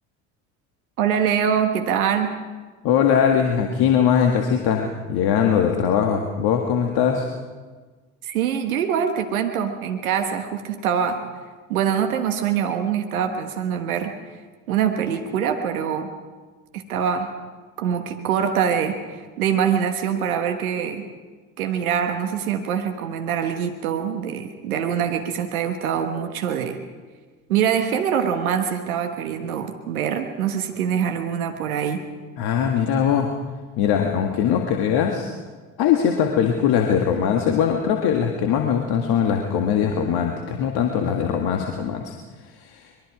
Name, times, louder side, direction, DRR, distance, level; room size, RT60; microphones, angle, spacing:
voice 1, 1.0-2.4 8.2-11.3 11.7-14.1 14.7-16.1 16.7-17.3 17.8-21.0 21.6-26.8 27.5-32.0, right 8 dB, 80° right, 6 dB, 1.5 m, -24 dB
voice 2, 2.8-7.3 32.4-33.3 33.8-35.3 35.8-42.1 42.6-42.9, left 8 dB, 60° left, 3 dB, 1.9 m, -21 dB
24.0 x 22.5 x 5.0 m, 1.4 s
hypercardioid pair, 60°, 42 cm